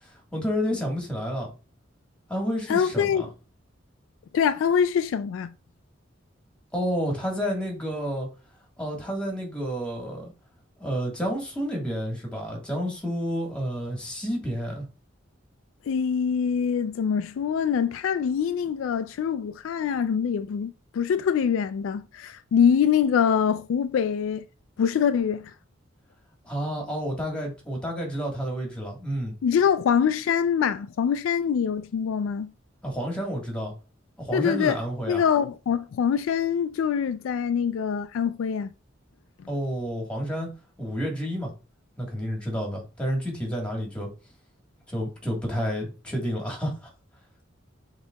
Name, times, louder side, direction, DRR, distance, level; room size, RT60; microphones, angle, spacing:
voice 1, 0.0-1.5 2.3-3.3 6.7-8.3 8.8-10.3 10.8-14.8 26.4-29.3 32.8-33.7 34.2-35.2 39.5-40.5 40.8-41.5 42.0-44.1 44.9-46.9, equal, 5° left, 1.4 m, -30 dB
voice 2, 2.7-3.3 4.3-5.5 15.9-24.4 24.8-25.5 29.4-32.5 34.3-34.8 35.1-38.7, left 7 dB, 85° left, 0.3 m, -24 dB
6.5 x 2.9 x 2.3 m
head